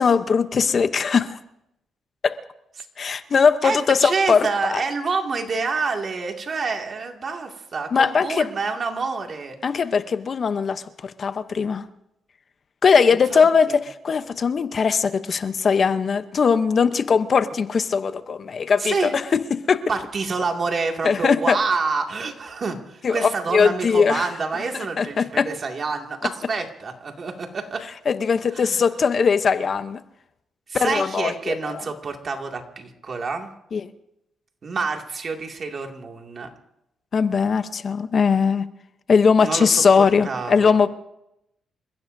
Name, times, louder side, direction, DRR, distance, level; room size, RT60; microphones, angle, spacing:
voice 1, 0.0-1.4 2.2-2.4 3.0-4.8 7.9-8.5 9.6-11.9 12.8-19.8 21.0-21.6 23.0-24.3 24.7-25.5 28.1-30.0 30.7-31.8 33.7-33.9 37.1-38.6 39.1-40.9, left 5 dB, 50° left, 0.8 m, -20 dB
voice 2, 3.6-9.6 13.3-13.8 18.8-19.1 19.9-27.9 28.5-28.8 30.7-33.5 34.6-36.5 39.4-40.8, right 4 dB, 45° right, 2.3 m, -27 dB
28.5 x 15.5 x 2.7 m
cardioid pair, 90°, 0 cm